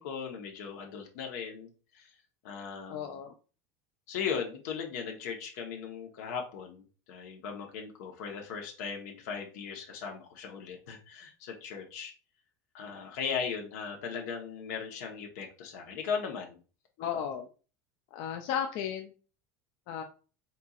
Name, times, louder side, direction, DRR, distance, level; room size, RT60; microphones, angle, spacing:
voice 1, 0.0-2.1 2.4-3.2 4.1-12.1 12.7-16.6, left 6 dB, 80° left, 2 dB, 1.1 m, -38 dB
voice 2, 2.9-3.3 17.0-17.5 18.1-19.1 19.9-20.0, left 8 dB, 55° left, 4 dB, 0.5 m, -34 dB
4.4 x 4.1 x 2.4 m, 0.36 s
cardioid pair, 165°, 9 cm